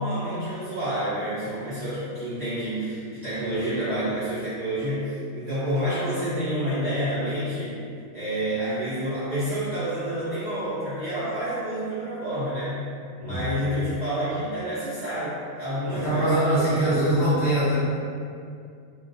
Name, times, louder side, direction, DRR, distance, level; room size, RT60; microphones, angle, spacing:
voice 1, 0.0-7.7 8.1-12.9 13.2-16.4, equal, 80° right, -13 dB, 0.3 m, -28 dB
voice 2, 15.9-17.7, right 1 dB, 20° left, -15 dB, 0.8 m, -22 dB
2.3 x 2.2 x 2.5 m, 2.4 s
omnidirectional pair, 1.5 m